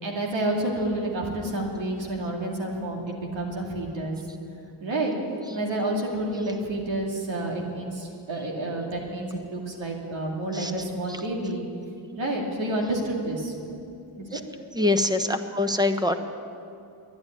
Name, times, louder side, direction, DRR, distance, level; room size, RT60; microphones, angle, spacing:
voice 1, 0.0-4.2 4.8-5.1 5.5-11.6 12.2-13.5 14.2-14.4, right 1 dB, 85° right, -1 dB, 2.5 m, -29 dB
voice 2, 14.7-16.2, left 2 dB, 10° right, 8 dB, 1.1 m, -24 dB
11.5 x 10.5 x 9.9 m, 2.6 s
cardioid pair, 65°, 44 cm